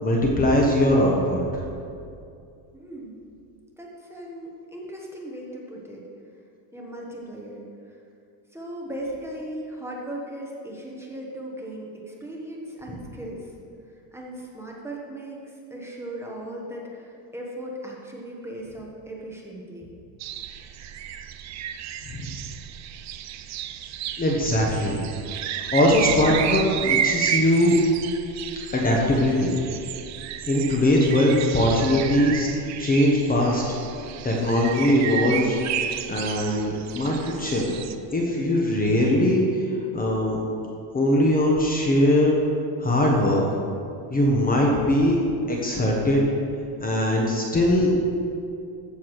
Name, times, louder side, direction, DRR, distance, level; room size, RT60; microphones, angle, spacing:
voice 1, 0.0-1.4 22.1-22.3 24.2-25.0 25.7-27.8 28.7-29.5 30.5-32.5 32.8-33.6 34.2-35.6 36.1-37.6 38.1-39.7 39.9-40.4 40.9-42.4 42.8-43.4 44.1-45.2 45.5-46.3 46.8-47.9, left 1 dB, 20° left, -1 dB, 1.2 m, -21 dB
voice 2, 2.7-3.2 3.8-6.0 6.7-7.9 8.5-13.5 14.1-17.1 17.3-19.9, right 1 dB, 5° right, -3 dB, 1.3 m, -37 dB
sound 1, 20.2-37.9, right 9 dB, 35° right, 0.5 m, -32 dB
14.0 x 7.1 x 4.7 m, 2.5 s
cardioid pair, 160°, 47 cm